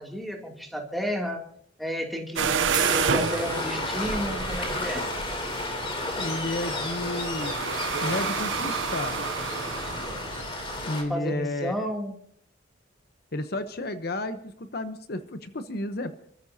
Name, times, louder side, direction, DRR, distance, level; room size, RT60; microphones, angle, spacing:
voice 1, 0.0-1.4 1.8-2.6 2.9-5.1 11.1-12.1, equal, ahead, 1 dB, 2.7 m, -32 dB
sound 1, 2.4-10.9, right 6 dB, 80° right, 0.7 m, -30 dB
sound 2, 2.7-10.5, right 4 dB, 20° right, 1.5 m, -40 dB
Waves surf, 2.9-11.0, left 2 dB, 30° left, 3.1 m, -33 dB
voice 2, 6.1-7.6 8.0-9.2 10.9-11.7 13.3-16.2, left 1 dB, 55° left, 9 dB, 0.9 m, -32 dB
28.0 x 14.0 x 2.8 m, 0.65 s
head